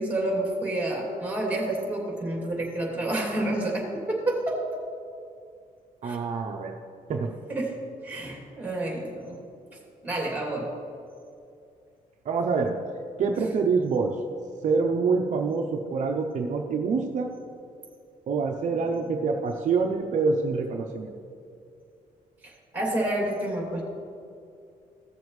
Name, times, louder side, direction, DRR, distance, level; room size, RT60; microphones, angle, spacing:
voice 1, 0.0-4.6 6.0-6.2 7.5-7.7 8.0-9.4 10.0-10.7 22.4-23.8, right 1 dB, 10° right, -2 dB, 2.6 m, -29 dB
voice 2, 6.0-6.8 7.1-7.3 12.3-12.7 13.2-14.2 14.6-17.3 18.3-21.1, right 4 dB, 55° right, 2 dB, 0.7 m, -26 dB
16.0 x 6.9 x 3.2 m, 2.5 s
cardioid pair, 130°, 15 cm